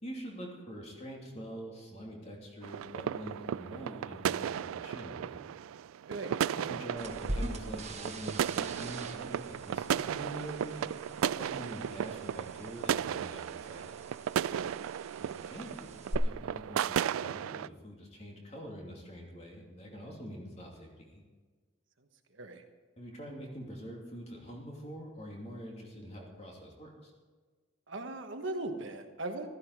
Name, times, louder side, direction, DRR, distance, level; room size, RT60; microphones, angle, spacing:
voice 1, 0.0-5.4 6.5-10.8 11.2-14.0 15.2-21.2 23.0-27.1, equal, 30° left, -1 dB, 2.9 m, -45 dB
sound 1, 2.6-17.7, right 9 dB, 90° right, 0.3 m, -35 dB
voice 2, 6.1-6.6 14.5-14.9 15.2-15.5 22.3-22.6 27.9-29.5, right 2 dB, 65° right, 5 dB, 1.4 m, -39 dB
sound 2, 7.0-16.1, right 1 dB, 30° right, 1.3 m, -44 dB
15.0 x 13.0 x 4.8 m, 1.4 s
head